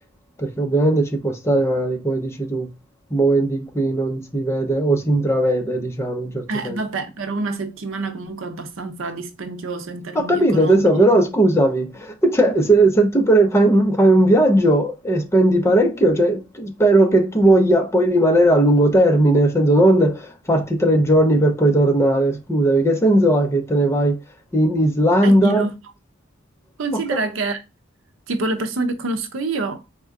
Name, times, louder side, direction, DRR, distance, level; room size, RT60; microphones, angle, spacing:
voice 1, 0.4-2.7 3.1-6.8 10.1-24.2 24.5-25.7 26.9-27.2, right 1 dB, 15° left, 0.7 m, -17 dB
voice 2, 6.5-10.8 25.2-25.7 26.8-27.6 28.3-29.8, right 3 dB, 85° right, 0.7 m, -27 dB
4.3 x 2.2 x 3.6 m
head